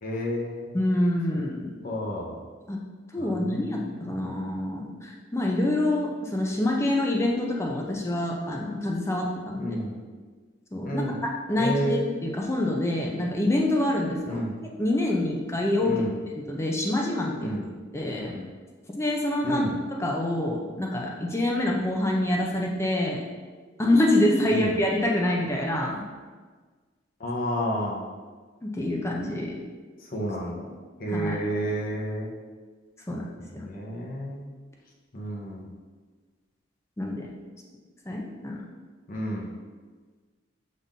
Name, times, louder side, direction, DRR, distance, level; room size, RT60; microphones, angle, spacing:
voice 1, 0.0-0.7 1.8-2.4 3.2-3.5 4.0-4.3 9.6-10.0 10.9-11.1 11.6-12.0 14.3-14.6 15.8-16.1 17.4-17.7 18.3-18.5 19.4-19.7 24.5-24.7 27.2-28.0 30.1-30.7 31.0-32.3 33.1-33.2 33.5-34.4 35.1-35.7 39.1-39.5, equal, 45° left, -2 dB, 0.8 m, -30 dB
voice 2, 0.7-1.7 2.7-2.8 3.1-9.8 10.7-11.0 11.5-14.4 14.8-16.0 16.4-17.6 17.9-18.3 19.0-19.6 20.0-23.2 23.8-26.0 28.6-29.6 31.1-31.4 33.1-33.2 33.5-33.6 37.0-37.3 38.1-38.6, left 1 dB, 15° left, -1 dB, 0.4 m, -26 dB
5.6 x 2.5 x 3.6 m, 1.4 s
head